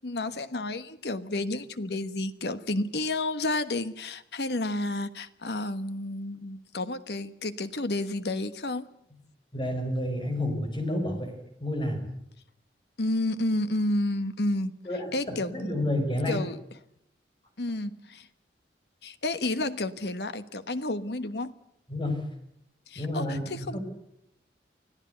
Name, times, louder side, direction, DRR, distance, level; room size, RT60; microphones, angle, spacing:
voice 1, 0.0-8.9 13.0-14.7 15.1-15.8 16.3-16.6 17.6-18.3 19.0-21.5 22.9-23.8, left 2 dB, 65° left, 12 dB, 1.3 m, -31 dB
voice 2, 9.5-12.1 14.9-16.4 21.9-22.3 23.0-23.8, left 1 dB, 30° left, 5 dB, 5.1 m, -30 dB
25.0 x 15.5 x 8.1 m, 0.78 s
head